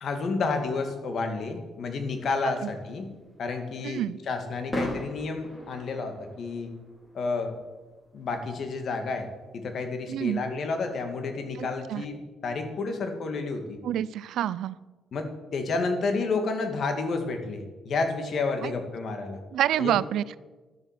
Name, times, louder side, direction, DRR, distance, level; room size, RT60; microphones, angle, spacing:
voice 1, 0.0-3.1 3.4-6.7 7.1-7.5 8.1-9.3 9.5-13.8 15.1-19.4 19.8-19.9, left 4 dB, 60° left, 6 dB, 2.2 m, -30 dB
sound 1, 0.8-12.1, left 1 dB, 15° left, 3.6 m, -42 dB
voice 2, 3.8-4.2 10.1-10.5 11.6-12.0 13.8-14.8 18.6-18.7 19.5-20.4, right 11 dB, 80° right, 19 dB, 0.4 m, -28 dB
12.0 x 7.7 x 7.5 m, 1.2 s
cardioid pair, 90°, 0 cm